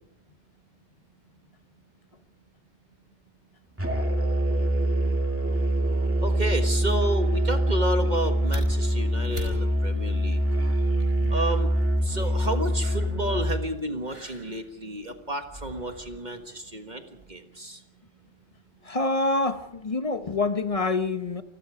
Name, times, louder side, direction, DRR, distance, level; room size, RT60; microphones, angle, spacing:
Musical instrument, 3.8-13.7, right 1 dB, 10° right, 2.1 m, -24 dB
voice 1, 6.2-10.4 11.3-11.7 12.0-17.8, right 1 dB, 40° right, 6 dB, 1.6 m, -31 dB
sound 1, 8.1-17.3, right 2 dB, 60° right, 5.3 m, -46 dB
voice 2, 18.8-21.4, left 3 dB, 35° left, 10 dB, 1.0 m, -26 dB
29.0 x 20.0 x 4.9 m, 0.86 s
omnidirectional pair, 1.2 m